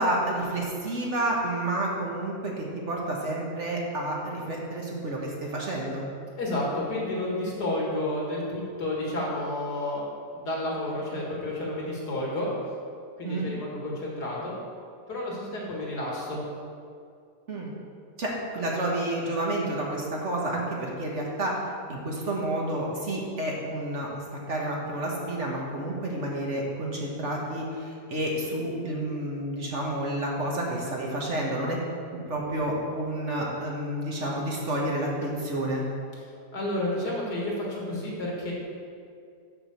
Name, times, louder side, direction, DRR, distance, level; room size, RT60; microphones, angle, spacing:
voice 1, 0.0-6.0 13.2-13.5 17.5-17.7 18.2-21.6 21.9-24.1 24.5-31.8 32.1-35.8, right 1 dB, 50° right, -2 dB, 1.3 m, -30 dB
voice 2, 6.4-10.1 10.3-12.5 13.2-14.6 15.1-16.4 36.5-38.5, left 1 dB, 70° left, -4 dB, 2.3 m, -30 dB
6.1 x 6.0 x 6.9 m, 2.3 s
omnidirectional pair, 1.8 m